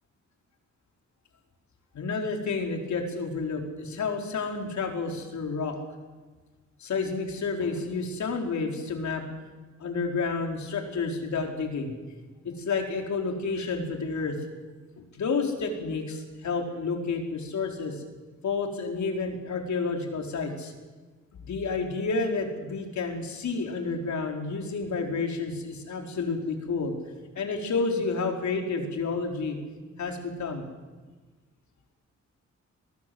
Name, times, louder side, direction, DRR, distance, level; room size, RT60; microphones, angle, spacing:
voice 1, 1.9-5.8 6.8-9.3 9.8-11.9 12.4-14.4 15.0-18.0 18.4-20.7 21.4-26.9 27.3-29.6 30.0-30.7, left 4 dB, 70° left, 2 dB, 4.3 m, -30 dB
24.0 x 20.0 x 7.9 m, 1.3 s
cardioid pair, 95°, 29 cm